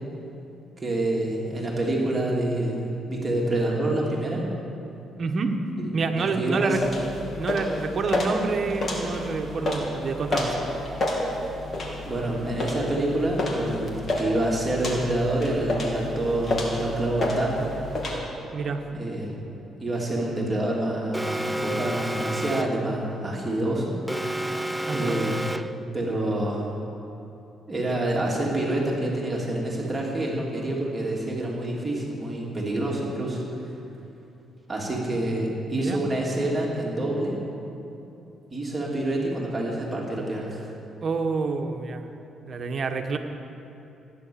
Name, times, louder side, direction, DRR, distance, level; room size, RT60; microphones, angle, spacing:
voice 1, 0.8-4.5 5.8-5.9 6.2-6.8 12.0-17.7 18.9-19.4 19.8-23.9 24.9-26.7 27.7-33.8 34.7-37.4 38.5-40.7, right 1 dB, 25° right, -3 dB, 2.9 m, -27 dB
voice 2, 5.2-5.6 5.9-6.8 7.3-10.6 18.5-18.8 24.9-25.1 35.7-36.0 41.0-42.1 42.5-43.2, right 4 dB, 50° right, 5 dB, 1.4 m, -28 dB
sound 1, 6.7-18.2, left 1 dB, 45° left, 2.8 m, -30 dB
Alarm, 21.1-22.9 24.1-25.9, right 1 dB, ahead, 0.5 m, -30 dB
15.5 x 10.0 x 7.1 m, 2.9 s
cardioid pair, 90°, 0 cm